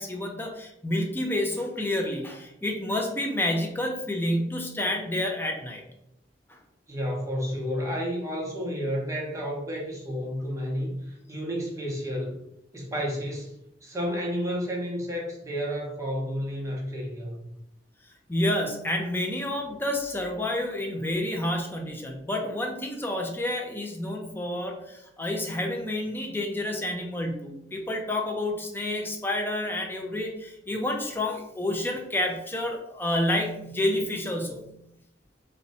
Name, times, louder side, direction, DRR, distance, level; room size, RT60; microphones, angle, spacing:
voice 1, 0.0-5.8 6.5-6.6 18.3-34.6, left 1 dB, 10° left, 2 dB, 0.5 m, -29 dB
voice 2, 6.9-12.4 12.7-13.5 13.8-17.5, equal, 15° right, -2 dB, 0.7 m, -31 dB
2.7 x 2.2 x 4.0 m, 0.80 s
head